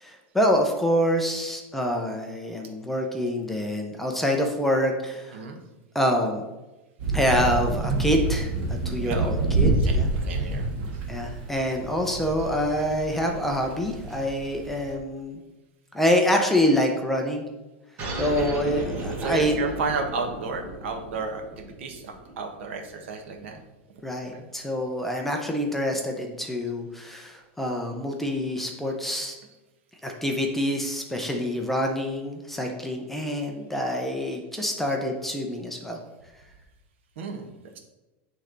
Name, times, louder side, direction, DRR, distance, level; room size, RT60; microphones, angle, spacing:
voice 1, 0.0-5.3 5.9-6.4 7.1-8.5 8.9-10.1 11.1-15.4 15.9-17.4 18.2-19.5 24.0-29.3 30.0-36.0, equal, 5° left, 2 dB, 0.5 m, -26 dB
sound 1, 7.0-14.9, right 3 dB, 50° right, 1.3 m, -27 dB
voice 2, 9.8-11.0 19.2-23.6 24.3-24.4 34.9-35.0 37.2-37.5, right 4 dB, 75° right, 3 dB, 1.1 m, -33 dB
sound 2, 18.0-23.0, right 2 dB, 25° right, 1.1 m, -35 dB
9.3 x 3.3 x 3.8 m, 1.1 s
supercardioid pair, 170°, 7 cm